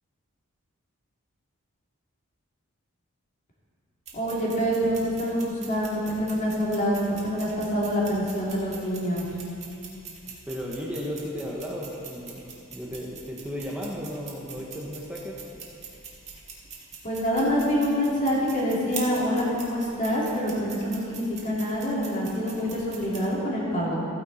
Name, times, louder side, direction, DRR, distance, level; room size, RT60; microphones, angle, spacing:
voice 1, 4.1-9.3 17.0-24.0, equal, 35° left, -5 dB, 2.7 m, -26 dB
sound 1, 4.1-23.2, right 5 dB, 30° right, 2.1 m, -44 dB
voice 2, 10.5-15.4, equal, 5° right, -4 dB, 1.0 m, -35 dB
14.5 x 9.6 x 4.1 m, 2.6 s
head